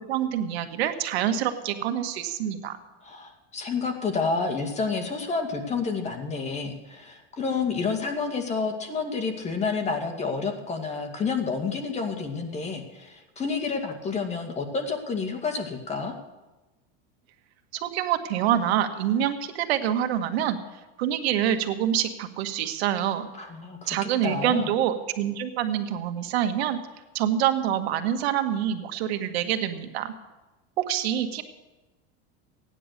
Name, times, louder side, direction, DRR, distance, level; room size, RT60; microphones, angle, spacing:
voice 1, 0.1-2.8 17.7-20.6 21.0-23.3 23.9-26.8 27.1-30.1 30.8-31.4, right 10 dB, 85° right, 7 dB, 1.6 m, -26 dB
voice 2, 3.0-16.1 23.3-24.0 24.2-24.7, left 4 dB, 20° left, 4 dB, 2.1 m, -29 dB
15.5 x 10.0 x 6.7 m, 1.1 s
supercardioid pair, 135°, 31 cm